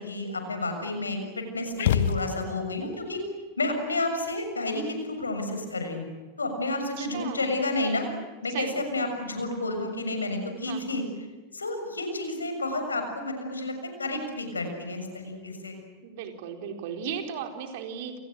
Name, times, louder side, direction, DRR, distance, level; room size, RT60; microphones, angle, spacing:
voice 1, 0.0-3.2 3.6-6.1 6.4-8.1 8.4-11.0 11.5-13.7 14.0-15.8, left 2 dB, 75° left, 6 dB, 6.7 m, -30 dB
sound 1, 1.8-2.8, left 9 dB, 55° left, 1.6 m, -26 dB
voice 2, 7.0-7.5 8.5-9.1 10.7-11.1 16.0-18.2, right 7 dB, 50° right, 5 dB, 4.5 m, -36 dB
29.5 x 29.5 x 6.5 m, 1.4 s
figure-of-eight pair, 90°, 0 cm